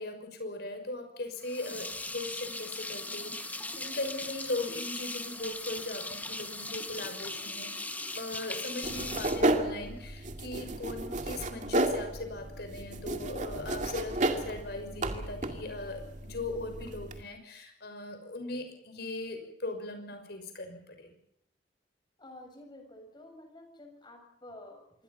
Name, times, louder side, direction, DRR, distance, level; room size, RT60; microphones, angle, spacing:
voice 1, 0.0-21.1, left 2 dB, 65° left, 6 dB, 6.1 m, -39 dB
sound 1, 1.4-10.2, left 2 dB, 10° left, 1.5 m, -39 dB
sound 2, 8.8-17.2, right 2 dB, 45° right, 2.2 m, -33 dB
voice 2, 22.2-25.0, left 1 dB, 25° left, 4 dB, 6.9 m, -50 dB
26.0 x 23.5 x 5.6 m, 0.72 s
head